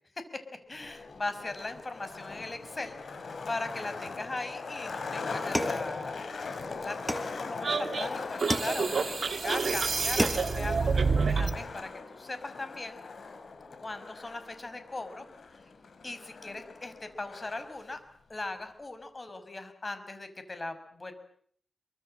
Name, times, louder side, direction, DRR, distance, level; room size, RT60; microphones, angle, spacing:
Skateboard, 0.7-17.8, left 4 dB, 65° left, 5.1 m, -40 dB
voice 1, 0.7-6.2 6.8-7.0 7.4-13.0 13.8-15.2 16.0-18.0 18.3-21.1, left 2 dB, 35° left, 10 dB, 5.8 m, -39 dB
sound 1, 5.5-6.5 7.1-7.8 8.5-9.2 9.7-9.8 10.0-10.7, equal, 5° left, 4.7 m, -33 dB
sound 2, 7.6-11.6, right 5 dB, 65° right, 2.2 m, -28 dB
28.0 x 24.5 x 7.8 m, 0.62 s
cardioid pair, 80°, 0 cm